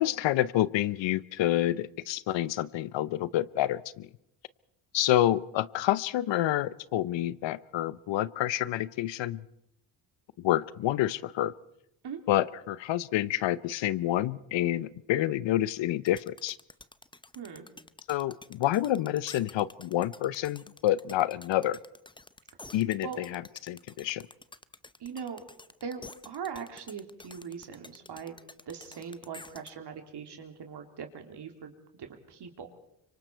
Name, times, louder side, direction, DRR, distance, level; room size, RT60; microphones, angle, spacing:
voice 1, 0.0-4.1 4.9-9.4 10.4-11.5 12.3-16.6 18.1-21.8 22.7-23.4 23.7-24.3, left 13 dB, 70° left, 19 dB, 0.8 m, -28 dB
sound 1, 16.1-29.7, left 2 dB, 10° left, 0.8 m, -50 dB
voice 2, 17.3-17.7 22.6-22.7 23.0-23.2 25.0-25.4 25.8-28.4 28.7-32.7, right 6 dB, 60° right, 5 dB, 3.3 m, -41 dB
25.5 x 24.5 x 4.6 m, 0.79 s
supercardioid pair, 70°, 46 cm